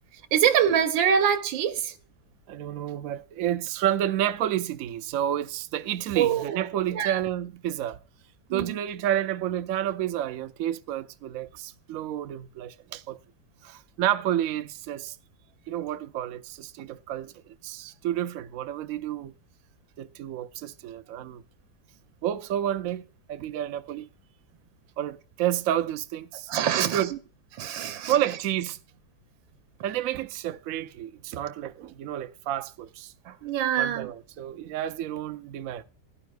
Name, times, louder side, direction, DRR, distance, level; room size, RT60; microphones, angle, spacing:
voice 1, 0.1-2.0 6.1-6.6 6.9-7.2 8.5-8.8 26.5-27.0 27.5-28.2 33.2-34.1, right 9 dB, 85° right, 1.5 m, -25 dB
voice 2, 2.5-8.0 8.5-13.2 13.6-15.2 15.7-19.3 20.0-21.4 22.2-23.0 23.3-24.1 25.0-26.5 26.8-27.1 28.1-28.8 29.8-33.1 33.8-35.8, right 11 dB, 65° right, 0.8 m, -30 dB
16.5 x 11.0 x 2.3 m
omnidirectional pair, 2.0 m